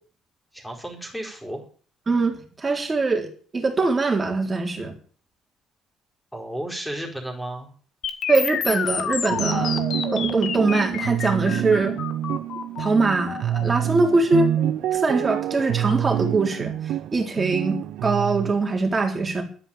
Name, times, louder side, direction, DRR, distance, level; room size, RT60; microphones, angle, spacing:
voice 1, 0.5-1.6 6.3-7.7, right 1 dB, ahead, 0 dB, 4.5 m, -33 dB
voice 2, 2.1-4.9 8.3-9.8 10.1-12.0 12.8-14.5 14.9-16.7 17.1-19.4, right 3 dB, 20° right, 2 dB, 3.9 m, -22 dB
sound 1, 8.0-16.0, left 7 dB, 50° left, 1.9 m, -30 dB
sound 2, 9.3-18.5, right 12 dB, 70° right, 0.7 m, -27 dB
12.0 x 10.0 x 9.0 m, 0.43 s
cardioid pair, 150°, 0 cm